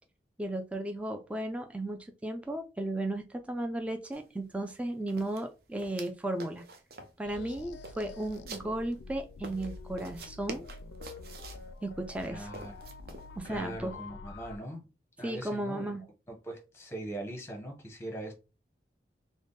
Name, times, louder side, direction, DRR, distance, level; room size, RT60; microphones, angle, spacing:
voice 1, 0.4-6.6 7.2-10.6 11.8-12.5 13.4-13.9 15.2-16.0, right 1 dB, 5° right, 0.3 m, -35 dB
sound 1, 4.1-4.2 4.5-4.7 5.1-6.1 6.4-7.2 7.5-9.0 9.4-11.7 12.1-13.3, right 3 dB, 55° right, 0.6 m, -46 dB
sound 2, 7.2-14.6, left 3 dB, 85° left, 0.4 m, -47 dB
voice 2, 12.3-12.8 13.4-14.9 15.2-15.9 16.3-18.3, right 1 dB, 15° left, 0.8 m, -41 dB
3.4 x 2.1 x 3.8 m
head